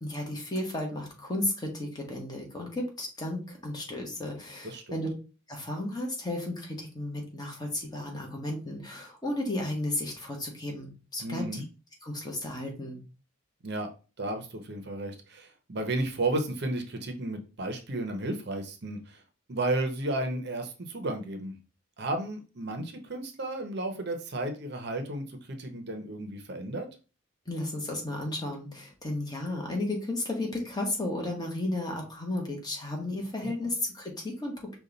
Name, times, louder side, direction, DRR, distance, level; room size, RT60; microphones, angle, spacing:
voice 1, 0.0-5.1 5.5-11.6 12.0-13.0 27.5-34.8, left 1 dB, 20° left, 0 dB, 1.1 m, -33 dB
voice 2, 4.6-5.0 11.2-11.6 13.6-13.9 14.2-19.2 19.5-21.6 22.0-26.9 33.4-33.5, right 2 dB, 55° right, 5 dB, 0.8 m, -33 dB
5.2 x 2.4 x 3.9 m, 0.33 s
head